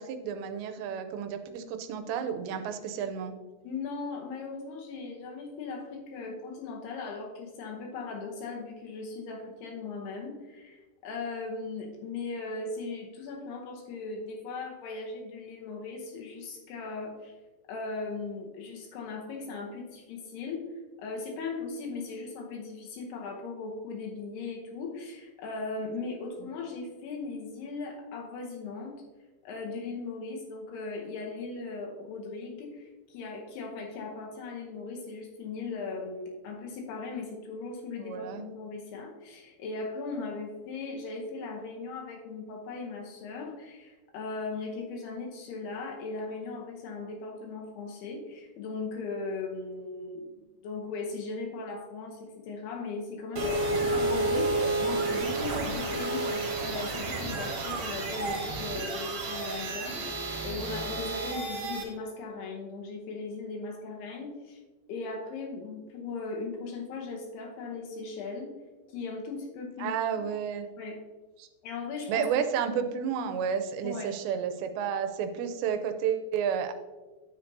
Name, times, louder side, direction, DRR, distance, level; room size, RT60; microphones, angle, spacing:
voice 1, 0.0-3.3 38.0-38.5 69.8-70.7 71.4-71.5 72.1-76.7, right 7 dB, 90° right, 8 dB, 2.9 m, -31 dB
voice 2, 3.6-17.4 17.7-20.6 21.0-29.0 29.4-64.6 64.9-68.5 68.9-70.0 70.8-71.0 71.6-72.3 73.8-74.1, left 4 dB, 75° left, 0 dB, 2.8 m, -38 dB
sound 1, 53.3-61.8, right 2 dB, 50° right, 2.5 m, -31 dB
10.0 x 7.8 x 2.7 m, 1.3 s
omnidirectional pair, 5.0 m